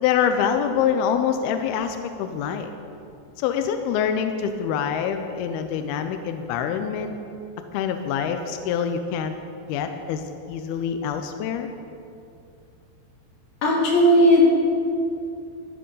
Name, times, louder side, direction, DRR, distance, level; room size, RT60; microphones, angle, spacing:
voice 1, 0.0-2.7 3.4-7.1 7.7-9.3 9.7-10.2 10.5-11.7, left 8 dB, 85° left, 7 dB, 2.3 m, -25 dB
voice 2, 13.6-14.4, equal, 60° left, -5 dB, 4.5 m, -16 dB
12.5 x 11.0 x 5.5 m, 2.5 s
omnidirectional pair, 5.0 m